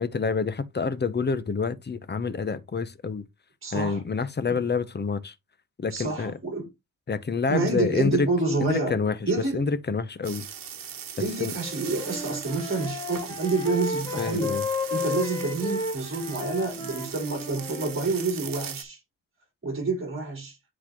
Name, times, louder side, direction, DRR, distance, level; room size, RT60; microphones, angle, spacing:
voice 1, 0.0-3.2 3.7-5.3 5.8-6.4 7.1-8.3 8.6-10.5 11.2-11.6 14.2-14.7, left 5 dB, 30° left, 0.8 m, -27 dB
voice 2, 3.6-4.0 4.5-4.6 5.9-6.7 7.5-9.0 9.2-9.7 11.2-14.6 14.9-19.0 19.6-20.6, right 3 dB, 40° right, 4.2 m, -28 dB
sound 1, 10.2-18.8, right 8 dB, 75° right, 1.3 m, -39 dB
Wind instrument woodwind instrument, 11.6-18.1, left 3 dB, 15° left, 1.9 m, -33 dB
10.0 x 4.0 x 3.0 m
wide cardioid pair, 110°, 33 cm